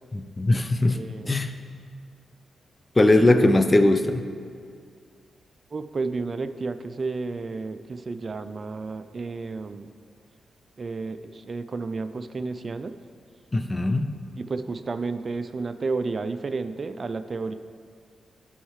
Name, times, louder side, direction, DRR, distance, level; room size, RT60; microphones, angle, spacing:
voice 1, 0.1-1.0 1.3-1.5 3.0-4.2 13.5-14.1, left 2 dB, 30° left, 9 dB, 0.5 m, -20 dB
voice 2, 0.9-1.5 3.2-3.3 5.7-9.9 10.8-13.0 14.4-17.5, right 3 dB, 50° right, 11 dB, 0.3 m, -32 dB
10.0 x 5.5 x 3.2 m, 2.2 s
supercardioid pair, 45°, 0 cm